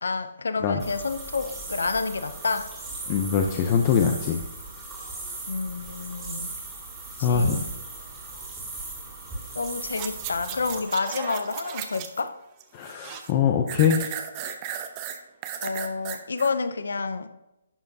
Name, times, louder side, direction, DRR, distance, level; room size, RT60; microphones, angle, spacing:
voice 1, 0.0-2.7 5.5-6.5 7.2-7.7 9.6-12.3 15.6-17.3, left 4 dB, 80° left, 11 dB, 0.5 m, -29 dB
sound 1, 0.8-10.8, right 3 dB, 10° right, 2.2 m, -38 dB
voice 2, 3.1-4.4 7.2-7.7 12.7-14.0, left 7 dB, 30° left, 3 dB, 0.6 m, -23 dB
sound 2, 9.9-12.3 12.6-13.3 13.7-16.5 17.0-17.1, right 9 dB, 25° right, 0.7 m, -35 dB
11.0 x 6.8 x 2.7 m, 0.93 s
hypercardioid pair, 155°, 0 cm